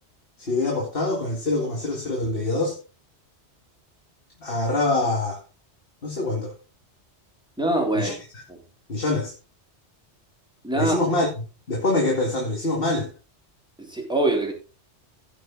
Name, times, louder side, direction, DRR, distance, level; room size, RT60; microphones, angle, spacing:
voice 1, 0.5-2.8 4.4-5.4 6.0-6.5 7.9-8.1 8.9-9.3 10.7-13.1, left 2 dB, 55° left, 2.4 m, -25 dB
voice 2, 7.6-8.1 10.6-11.0 13.8-14.5, right 1 dB, 5° right, 3.4 m, -23 dB
16.5 x 6.0 x 4.0 m
omnidirectional pair, 1.2 m